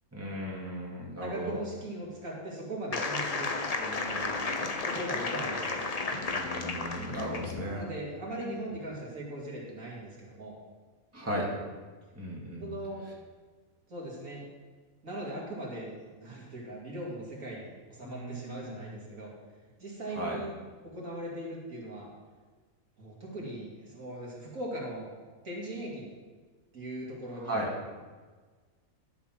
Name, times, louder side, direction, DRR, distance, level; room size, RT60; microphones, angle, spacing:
voice 1, 0.1-1.6 6.3-7.9 11.1-11.6 12.1-12.7 18.0-18.9 20.2-20.4 27.4-27.7, equal, 10° right, -4 dB, 2.3 m, -36 dB
voice 2, 1.2-3.5 3.8-6.0 7.6-10.6 12.6-13.0 13.9-14.4 15.0-19.3 19.8-20.5 20.8-22.1 23.0-25.1 25.4-26.1 26.7-27.6, right 1 dB, 65° right, -4 dB, 2.9 m, -39 dB
sound 1, 2.9-7.6, left 3 dB, 35° left, 0.7 m, -33 dB
11.5 x 7.1 x 6.0 m, 1.4 s
omnidirectional pair, 1.5 m